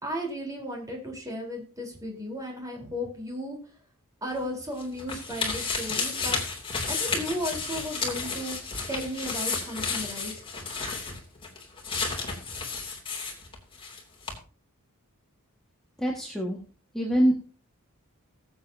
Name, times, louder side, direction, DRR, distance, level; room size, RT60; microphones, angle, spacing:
voice 1, 0.0-3.6 4.2-6.4 6.9-8.6 8.9-10.3, equal, 15° right, 0 dB, 4.0 m, -34 dB
sound 1, 4.3-14.0 14.2-14.3, left 4 dB, 25° left, 2.9 m, -32 dB
voice 2, 16.0-16.6 16.9-17.5, equal, ahead, -2 dB, 1.8 m, -25 dB
21.0 x 7.8 x 2.8 m, 0.39 s
head